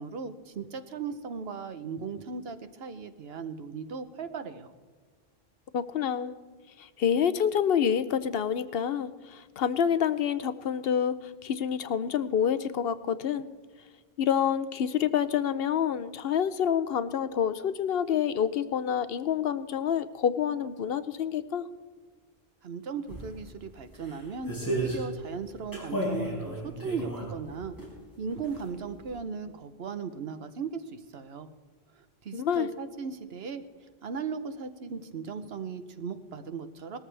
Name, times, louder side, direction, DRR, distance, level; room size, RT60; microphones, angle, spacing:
voice 1, 0.0-4.7 22.6-27.8 28.2-31.5 32.0-33.6 34.0-37.0, right 5 dB, 70° right, 10 dB, 1.1 m, -37 dB
voice 2, 5.7-6.4 6.8-13.5 14.2-21.7 32.3-32.7, left 8 dB, 70° left, 13 dB, 0.8 m, -27 dB
sound 1, 23.1-23.2 23.9-25.0 25.7-27.9 28.3-28.8 29.1-29.2, right 1 dB, 20° left, 5.1 m, -33 dB
19.5 x 14.0 x 3.4 m, 1.5 s
omnidirectional pair, 1.1 m